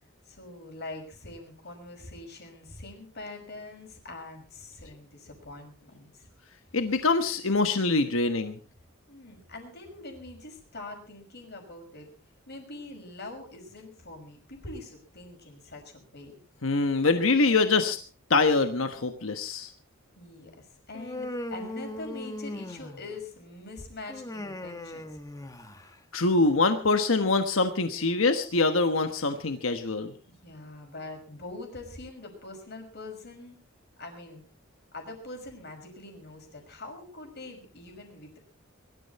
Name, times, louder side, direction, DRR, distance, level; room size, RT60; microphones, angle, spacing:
voice 1, 0.3-6.3 9.1-12.1 12.5-16.3 20.1-25.2 30.4-33.6 34.0-34.4 34.9-38.4, left 2 dB, 55° left, 3 dB, 5.9 m, -43 dB
voice 2, 6.7-8.6 16.6-18.0 18.3-19.7 26.1-30.1, left 3 dB, 80° left, 8 dB, 1.3 m, -24 dB
Human voice, 20.9-23.2 24.1-25.9, left 1 dB, 15° left, 1.4 m, -38 dB
22.5 x 13.5 x 4.2 m, 0.39 s
head